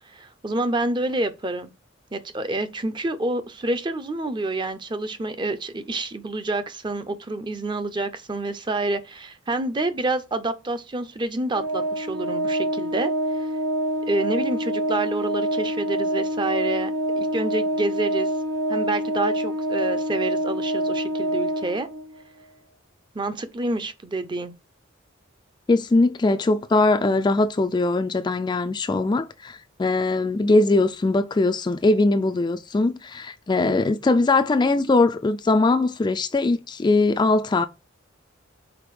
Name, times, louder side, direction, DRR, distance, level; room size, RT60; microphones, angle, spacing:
voice 1, 0.1-1.7 2.1-13.5 14.1-16.9 17.2-18.3 18.7-21.9 23.1-24.5, right 2 dB, 25° right, 0.5 m, -28 dB
Organ, 11.5-22.2, right 1 dB, 85° right, 0.6 m, -26 dB
voice 2, 25.7-37.6, left 2 dB, 20° left, 0.3 m, -21 dB
5.1 x 4.1 x 4.7 m
head